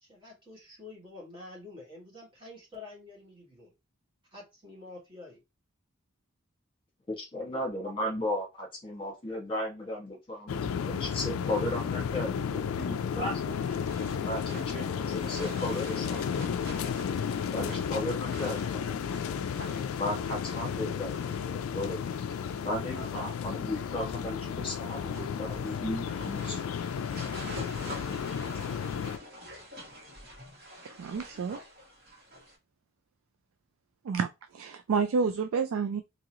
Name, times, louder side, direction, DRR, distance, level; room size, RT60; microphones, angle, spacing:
voice 1, 0.0-3.7 4.3-5.4, left 2 dB, 25° right, 1.7 m, -48 dB
voice 2, 7.1-13.6 14.2-16.6 17.5-19.0 19.9-22.0 22.6-26.6, left 1 dB, 25° left, 1.6 m, -35 dB
sound 1, 10.5-29.2, left 7 dB, 90° left, 0.3 m, -33 dB
sound 2, 13.3-32.5, equal, 45° right, 1.8 m, -48 dB
voice 3, 30.8-31.6 34.0-36.0, right 5 dB, 85° right, 0.3 m, -29 dB
3.6 x 2.9 x 3.0 m
head